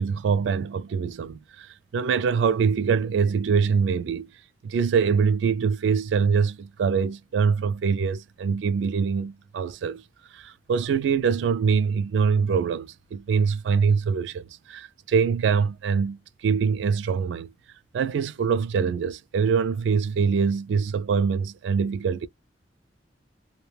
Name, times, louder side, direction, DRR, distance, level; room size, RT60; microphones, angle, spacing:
voice 1, 0.0-4.3 4.6-10.0 10.3-17.5 17.9-22.3, right 6 dB, 70° right, 0.3 m, -24 dB
2.3 x 2.2 x 3.1 m
head